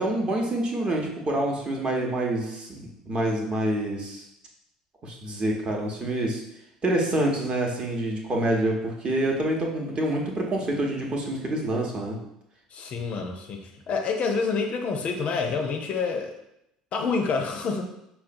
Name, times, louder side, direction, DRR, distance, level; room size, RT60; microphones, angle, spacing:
voice 1, 0.0-4.2 5.0-6.4 6.8-12.2, right 1 dB, 30° right, 0 dB, 0.7 m, -27 dB
voice 2, 12.7-16.3 16.9-17.8, left 4 dB, 40° left, 3 dB, 0.4 m, -28 dB
5.4 x 2.2 x 2.5 m, 0.81 s
figure-of-eight pair, 60°, 3 cm